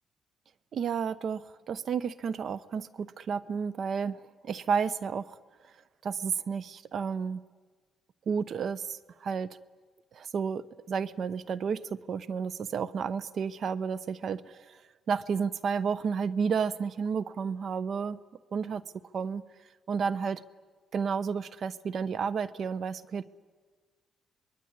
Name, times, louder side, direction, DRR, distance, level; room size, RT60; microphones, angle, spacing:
voice 1, 0.7-5.3 6.0-7.4 8.3-9.5 10.1-14.8 15.1-18.2 18.5-18.8 19.1-19.4 19.9-20.4 20.9-23.2, right 6 dB, 60° right, 18 dB, 0.9 m, -31 dB
26.0 x 22.0 x 9.7 m, 1.5 s
cardioid pair, 90°, 0 cm